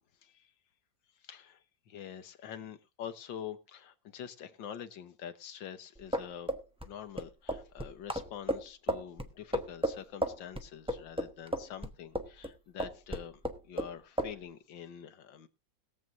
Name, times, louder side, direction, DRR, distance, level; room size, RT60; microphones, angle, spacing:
voice 1, 1.2-6.5 6.8-15.5, left 9 dB, 85° left, 10 dB, 1.8 m, -46 dB
sound 1, 5.9-12.5 12.8-13.9 14.2-14.4, equal, 5° right, 0.6 m, -34 dB
21.5 x 7.7 x 2.6 m, 0.27 s
omnidirectional pair, 2.0 m